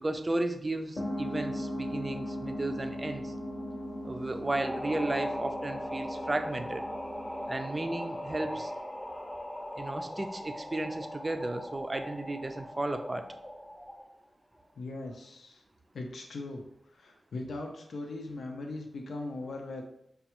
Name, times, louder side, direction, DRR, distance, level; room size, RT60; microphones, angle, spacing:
voice 1, 0.0-3.3 4.0-6.8 7.5-8.7 9.8-13.2, right 2 dB, 30° right, 7 dB, 0.4 m, -34 dB
sound 1, 1.0-9.1, equal, 50° left, 0.8 m, -39 dB
sound 2, 4.4-14.1, equal, 20° left, 0.8 m, -39 dB
voice 2, 14.8-15.6 15.9-16.6 17.0-19.8, left 2 dB, 85° left, 2 dB, 0.5 m, -39 dB
5.1 x 2.3 x 2.9 m, 0.76 s
wide cardioid pair, 70°, 0 cm